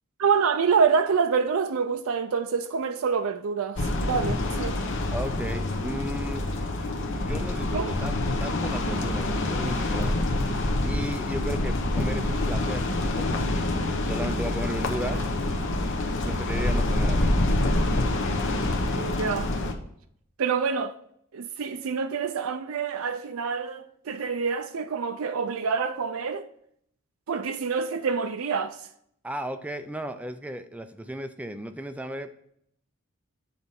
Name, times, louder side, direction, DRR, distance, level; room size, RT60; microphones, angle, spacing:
voice 1, 0.2-4.8 7.7-8.0 18.9-19.5 20.4-20.9 21.3-26.4 27.3-28.8, right 5 dB, 70° right, 0.5 m, -26 dB
sound 1, 3.8-19.7, left 2 dB, 60° left, 0.9 m, -26 dB
voice 2, 5.1-6.4 7.0-10.2 10.8-13.7 14.0-15.3 16.2-17.4 29.2-32.3, right 1 dB, 5° right, 0.4 m, -35 dB
8.1 x 4.2 x 5.3 m
head